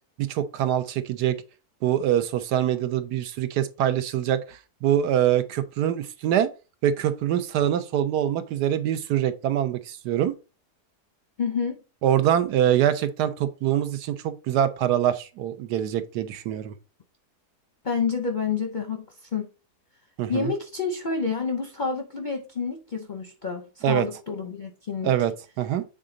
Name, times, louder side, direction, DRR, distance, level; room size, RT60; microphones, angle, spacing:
voice 1, 0.2-1.4 1.8-6.5 6.8-10.3 12.0-16.7 20.2-20.5 23.8-24.1 25.0-25.3 25.6-25.8, right 11 dB, 80° right, 1.3 m, -24 dB
voice 2, 11.4-11.8 17.8-19.1 19.3-19.5 20.3-25.1, left 5 dB, 45° left, 0.6 m, -28 dB
7.5 x 3.8 x 3.8 m
omnidirectional pair, 1.7 m